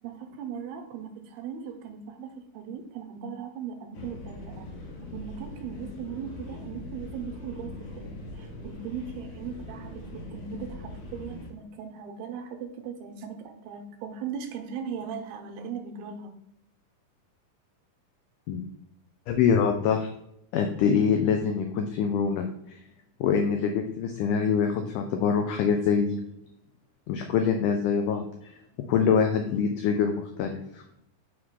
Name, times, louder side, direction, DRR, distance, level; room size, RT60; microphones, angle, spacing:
voice 1, 0.0-4.7 5.1-16.3, right 7 dB, 85° right, 4 dB, 2.7 m, -38 dB
sound 1, 3.9-11.5, left 1 dB, 65° left, 2.6 m, -41 dB
voice 2, 19.3-20.1 20.5-22.8 23.2-26.2 27.1-28.3 28.9-30.8, left 6 dB, 90° left, 4 dB, 1.8 m, -25 dB
6.4 x 4.7 x 3.6 m, 0.78 s
omnidirectional pair, 4.3 m